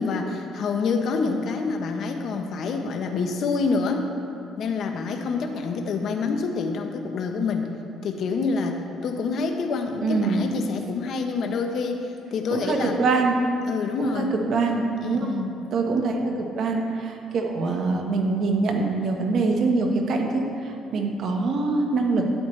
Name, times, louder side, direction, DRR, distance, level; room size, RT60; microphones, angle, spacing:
voice 1, 0.0-4.1 4.6-7.7 8.0-13.0 13.7-14.3 15.0-15.5, left 4 dB, 60° left, 4 dB, 0.9 m, -27 dB
voice 2, 10.0-10.4 12.5-13.4 14.0-15.4 15.7-22.3, right 3 dB, 55° right, 2 dB, 1.2 m, -24 dB
12.0 x 8.7 x 3.3 m, 2.8 s
cardioid pair, 110°, 0 cm